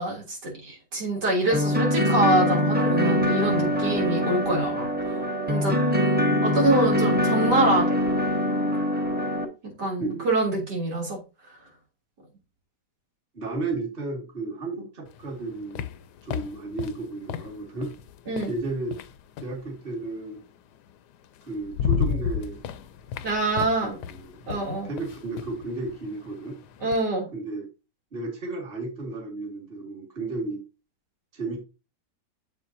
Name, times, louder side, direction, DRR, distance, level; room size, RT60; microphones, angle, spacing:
voice 1, 0.0-4.9 5.5-5.7 6.4-8.0 9.8-11.2 18.3-18.5 23.2-24.0 24.5-24.9 26.8-27.3, right 2 dB, 85° right, -1 dB, 3.7 m, -25 dB
sound 1, 1.5-9.4, left 1 dB, 5° right, 1.1 m, -23 dB
voice 2, 13.3-15.9 16.2-17.9 18.5-19.0 19.4-20.4 21.4-22.6 23.6-26.6 27.3-27.7 28.1-30.6 31.3-31.6, right 3 dB, 35° right, -1 dB, 2.3 m, -33 dB
sound 2, 15.1-19.6 20.9-21.0 21.4-27.1, left 8 dB, 85° left, 1.3 m, -33 dB
7.8 x 7.2 x 2.7 m, 0.28 s
omnidirectional pair, 1.7 m